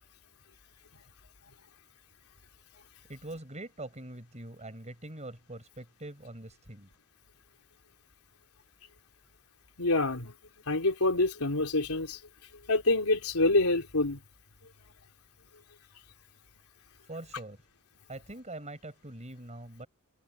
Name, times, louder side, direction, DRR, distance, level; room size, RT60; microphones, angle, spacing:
voice 1, 3.1-6.9 17.0-17.6 18.1-19.9, right 2 dB, 30° right, 7.1 m, -43 dB
voice 2, 9.8-10.3 10.7-12.2 12.7-14.2, left 2 dB, 85° left, 3.4 m, -26 dB
head